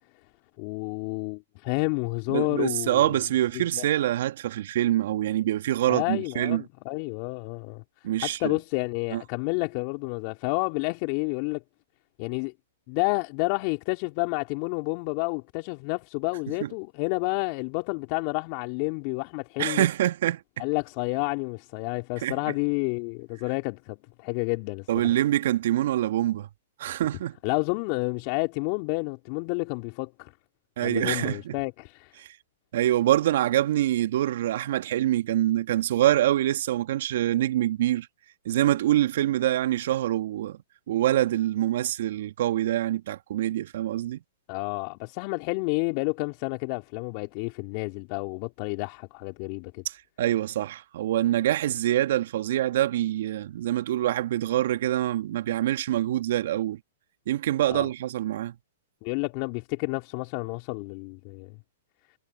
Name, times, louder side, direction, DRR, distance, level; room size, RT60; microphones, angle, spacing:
voice 1, 0.6-3.2 3.7-3.8 5.9-7.8 8.2-11.6 12.2-12.5 12.9-19.9 20.6-24.9 27.4-30.3 30.8-32.1 44.5-49.8 57.7-57.9 59.0-61.6, left 31 dB, 45° left, 2.8 m, -30 dB
voice 2, 2.3-6.6 8.0-8.5 9.1-9.2 16.6-16.7 19.6-20.6 22.2-22.4 24.9-26.5 26.8-27.4 30.8-31.6 32.2-32.3 32.7-38.1 38.5-40.6 40.9-44.2 49.9-56.8 57.3-58.5, right 13 dB, 60° right, 1.8 m, -25 dB
hypercardioid pair, 115°, 0 cm